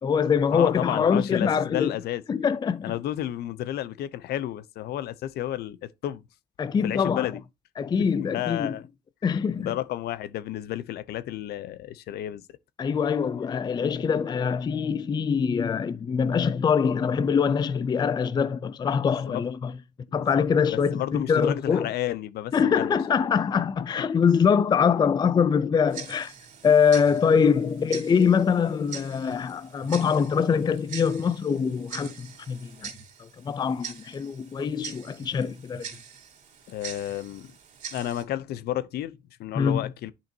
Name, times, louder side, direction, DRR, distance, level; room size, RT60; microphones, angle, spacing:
voice 1, 0.0-2.0 2.3-2.9 6.6-7.3 7.8-8.8 9.2-9.7 12.8-19.7 20.1-21.9 22.5-26.3 26.6-32.9 33.2-35.9 39.5-39.9, left 6 dB, 25° left, 0.4 m, -24 dB
voice 2, 0.5-2.2 2.8-6.2 6.8-7.4 8.0-8.9 9.6-12.4 19.0-19.4 20.1-20.5 20.9-23.0 28.3-28.4 36.7-37.5 37.9-40.1, left 12 dB, 70° left, 0.7 m, -32 dB
Tick-tock, 25.9-38.2, right 7 dB, 50° right, 3.0 m, -43 dB
10.5 x 5.6 x 2.7 m
cardioid pair, 110°, 17 cm